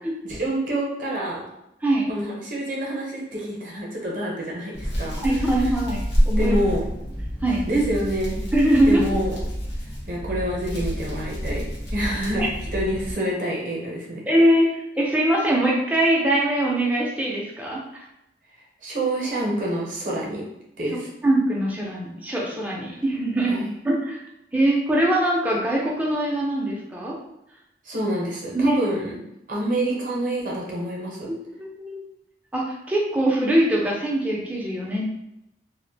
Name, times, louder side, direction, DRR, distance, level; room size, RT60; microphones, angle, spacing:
voice 1, 0.2-1.5 2.1-5.2 6.4-6.9 7.7-8.4 8.9-9.4 10.1-14.2 18.8-20.4 20.8-21.1 23.5-23.7 27.9-29.2 29.5-31.3, right 1 dB, 45° right, -3 dB, 0.6 m, -27 dB
voice 2, 1.8-2.1 5.2-6.6 7.4-7.6 8.5-9.0 14.3-14.7 15.0-18.1 21.2-23.5 23.8-24.2 24.5-27.2 28.5-28.8 31.3-32.0 32.5-35.1, right 1 dB, 10° right, -3 dB, 0.4 m, -22 dB
Hands, 4.7-13.1, equal, 85° left, 0.8 m, -28 dB
2.4 x 2.1 x 2.6 m, 0.84 s
head